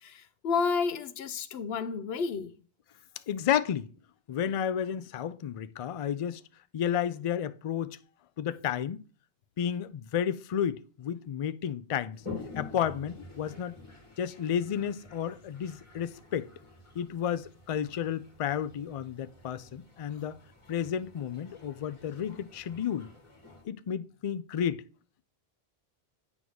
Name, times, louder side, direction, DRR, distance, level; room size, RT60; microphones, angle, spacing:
voice 1, 0.0-2.5, left 5 dB, 75° left, 0.9 m, -31 dB
voice 2, 3.3-3.9 4.3-6.4 6.7-8.0 8.4-9.0 9.6-12.2 12.6-13.8 14.2-16.5 17.0-20.4 20.7-23.1 23.7-24.8, left 9 dB, 55° left, 0.3 m, -32 dB
Toilet flush, 12.1-23.6, left 4 dB, 30° left, 1.9 m, -48 dB
8.3 x 3.5 x 6.2 m
omnidirectional pair, 1.1 m